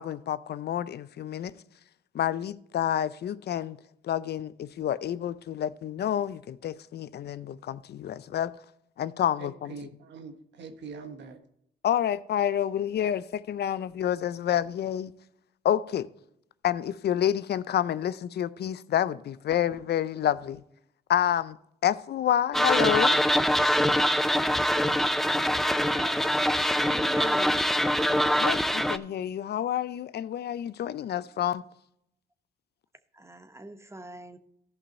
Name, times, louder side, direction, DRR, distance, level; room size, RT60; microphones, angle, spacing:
voice 1, 0.0-1.6 2.1-3.8 4.0-8.5 9.0-9.7 11.8-15.1 15.6-16.1 16.6-20.6 21.1-21.6 21.8-23.2 28.4-31.6, left 10 dB, 60° left, 0.5 m, -28 dB
voice 2, 9.4-11.4, right 4 dB, 75° right, 1.3 m, -43 dB
sound 1, 22.5-29.0, equal, ahead, 0.6 m, -24 dB
voice 3, 25.9-26.3 26.9-27.6 33.1-34.4, right 1 dB, 15° right, 1.0 m, -42 dB
14.0 x 5.5 x 4.2 m
supercardioid pair, 60°, 19 cm